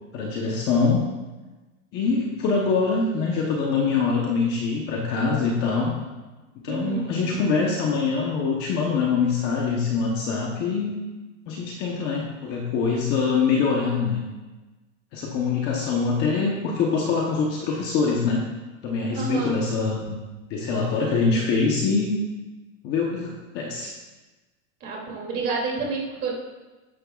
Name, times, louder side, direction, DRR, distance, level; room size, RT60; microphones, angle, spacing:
voice 1, 0.1-1.0 1.9-5.9 6.6-11.0 11.5-14.2 15.1-18.5 18.8-20.2 20.5-22.2 22.8-24.0, left 4 dB, 25° left, -1 dB, 1.0 m, -24 dB
voice 2, 6.7-7.1 19.1-19.6 24.8-26.3, right 3 dB, 25° right, -3 dB, 2.8 m, -28 dB
12.5 x 10.0 x 2.4 m, 1.2 s
supercardioid pair, 165°, 42 cm